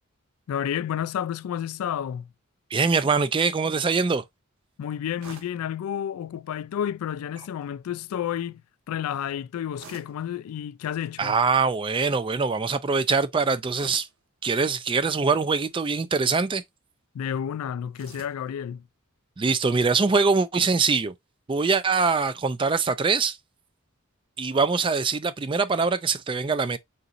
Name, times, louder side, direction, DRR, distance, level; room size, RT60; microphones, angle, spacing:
voice 1, 0.5-2.3 4.8-8.6 8.9-11.3 17.1-18.8, left 9 dB, 90° left, 0.3 m, -30 dB
voice 2, 2.7-4.2 11.2-14.1 14.4-16.6 19.4-21.1 21.5-23.4 24.4-26.8, right 4 dB, 25° right, 0.3 m, -23 dB
sound 1, 5.2-5.7 7.3-7.7 9.8-10.3 10.9-11.1 13.7-14.2 15.5-15.9 17.9-18.5, right 4 dB, 75° right, 1.3 m, -47 dB
4.0 x 3.9 x 2.4 m
head